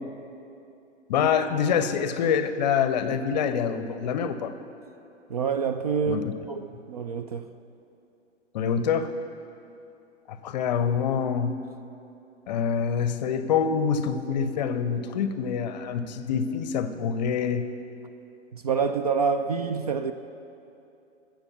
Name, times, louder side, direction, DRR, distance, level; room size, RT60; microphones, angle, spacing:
voice 1, 1.1-4.5 6.1-6.3 8.5-9.1 10.3-11.6 12.5-17.7, left 7 dB, 35° left, 11 dB, 0.7 m, -26 dB
voice 2, 5.3-7.5 18.5-20.1, right 6 dB, 35° right, 9 dB, 0.4 m, -27 dB
13.5 x 7.6 x 7.1 m, 2.7 s
figure-of-eight pair, 115°, 36 cm